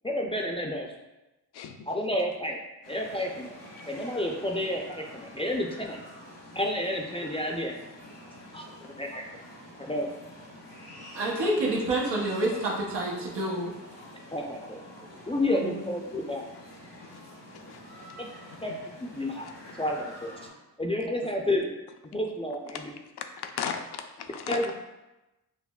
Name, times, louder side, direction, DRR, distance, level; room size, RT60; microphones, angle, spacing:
voice 1, 0.0-0.9 1.9-2.6 2.9-3.5 3.9-6.0 6.6-7.8 8.5-9.2 9.8-10.1 11.6-11.8 14.3-14.8 15.3-16.4 18.2-18.3 18.6-18.7 19.0-19.5 19.8-20.3 20.8-21.7 22.1-22.8 24.5-24.7, left 1 dB, 15° left, 0 dB, 0.4 m, -30 dB
sound 1, 2.8-20.5, left 1 dB, 90° left, 1.5 m, -47 dB
voice 2, 11.1-13.7 15.5-15.9, right 1 dB, 90° right, -3 dB, 0.8 m, -28 dB
voice 3, 17.5-17.8 18.7-18.8 22.7-22.8 23.4-24.6, left 7 dB, 70° left, 6 dB, 0.5 m, -36 dB
5.8 x 2.1 x 2.3 m, 1.0 s
cardioid pair, 60°, 41 cm